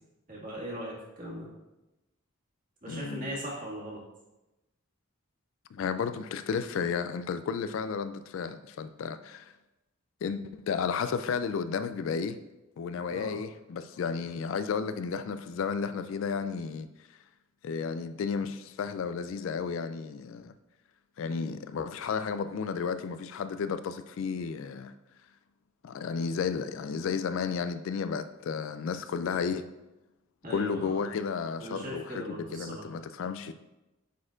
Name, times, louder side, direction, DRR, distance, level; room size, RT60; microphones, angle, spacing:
voice 1, 0.3-1.5 2.8-4.0 13.1-13.4 30.4-31.0 31.6-32.8, right 1 dB, 40° right, 1.8 m, -38 dB
voice 2, 2.9-3.3 5.7-9.5 10.2-12.4 12.8-16.9 17.6-20.5 21.2-24.9 25.8-29.6 30.5-33.5, left 6 dB, 65° left, 0.3 m, -33 dB
9.3 x 4.3 x 2.5 m
head